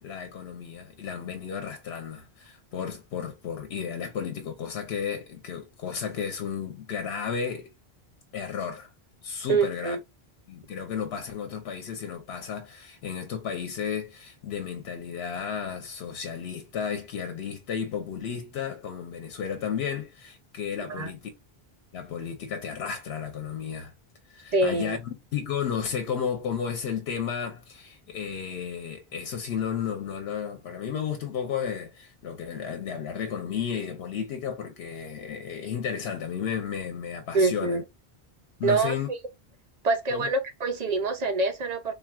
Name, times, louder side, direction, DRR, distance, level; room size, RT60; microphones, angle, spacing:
voice 1, 0.0-7.7 8.3-8.9 9.2-10.0 10.5-21.3 21.9-23.9 24.3-37.8 38.6-39.1 40.1-40.3, left 7 dB, 85° left, 0.9 m, -33 dB
voice 2, 9.5-10.0 20.9-21.1 24.5-25.0 37.3-37.8 38.6-39.0 39.8-41.9, right 3 dB, 55° right, 0.5 m, -25 dB
3.7 x 2.2 x 2.3 m
omnidirectional pair, 1.0 m